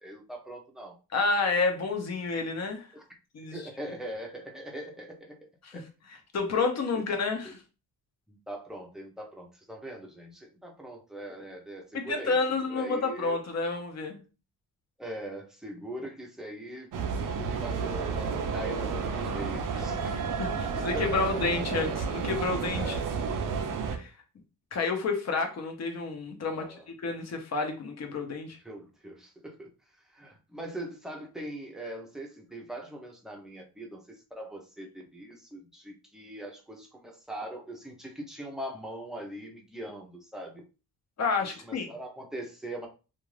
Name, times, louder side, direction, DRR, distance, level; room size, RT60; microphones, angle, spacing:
voice 1, 0.0-1.0 2.9-3.0 3.5-5.9 7.4-7.5 8.3-12.4 12.7-13.4 15.0-16.9 17.2-21.5 22.8-23.1 26.5-26.9 28.6-29.7 30.1-40.6 41.4-42.9, right 1 dB, ahead, 1 dB, 0.6 m, -41 dB
voice 2, 1.1-2.9 3.3-3.6 5.6-5.8 6.3-7.6 11.9-14.2 20.1-23.0 23.9-24.1 24.7-26.7 27.0-28.6 41.2-41.9, left 4 dB, 45° left, 4 dB, 0.8 m, -30 dB
sound 1, 16.9-24.0, right 5 dB, 60° right, 0.5 m, -31 dB
2.5 x 2.4 x 3.1 m, 0.33 s
cardioid pair, 125°, 37 cm